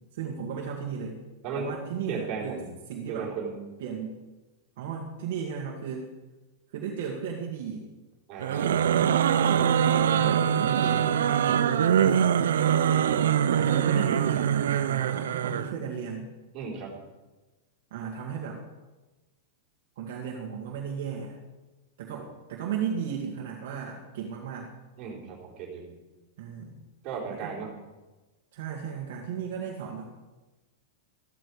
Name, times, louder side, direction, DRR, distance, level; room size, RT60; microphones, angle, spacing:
voice 1, 0.1-1.2 1.6-2.6 2.9-3.3 3.8-4.2 4.8-6.1 6.7-7.9 9.4-12.4 13.3-16.3 17.9-18.6 20.0-21.4 22.0-24.7 26.4-26.7 27.3-27.7 28.5-30.0, right 7 dB, 50° right, -1 dB, 2.0 m, -35 dB
voice 2, 2.1-2.7 3.1-3.5 8.3-8.9 16.5-17.0 25.0-25.9 27.0-27.7, right 5 dB, 25° right, -3 dB, 4.1 m, -35 dB
sound 1, 8.4-15.7, right 9 dB, 90° right, 0.7 m, -23 dB
14.0 x 13.5 x 4.9 m, 1.2 s
supercardioid pair, 175°, 0 cm